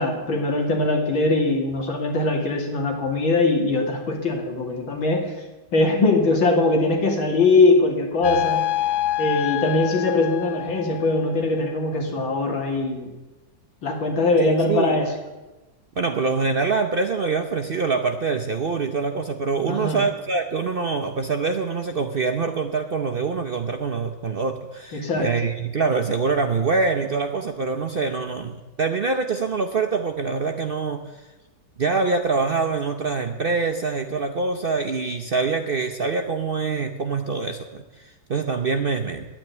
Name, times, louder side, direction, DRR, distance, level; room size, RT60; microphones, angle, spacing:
voice 1, 0.0-5.3 5.7-8.6 9.2-13.1 13.8-15.1 19.7-20.1 24.9-25.4, left 2 dB, 85° left, 2 dB, 3.1 m, -21 dB
sound 1, 8.2-11.4, left 13 dB, 70° left, 1.0 m, -26 dB
voice 2, 14.4-15.0 16.0-31.3 31.8-39.3, right 4 dB, 80° right, 5 dB, 0.5 m, -25 dB
10.5 x 9.3 x 9.2 m, 1.1 s
omnidirectional pair, 2.1 m